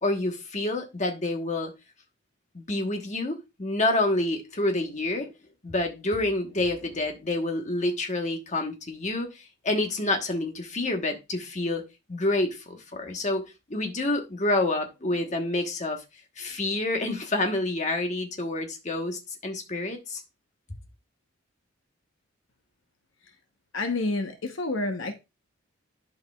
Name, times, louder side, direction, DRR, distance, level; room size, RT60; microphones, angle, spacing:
voice 1, 0.0-1.7 2.5-5.3 5.6-11.8 12.1-13.4 13.7-16.0 16.4-20.2, left 2 dB, 35° left, 1.1 m, -28 dB
voice 2, 23.7-25.1, left 2 dB, 65° left, 0.9 m, -28 dB
11.5 x 4.8 x 2.3 m
head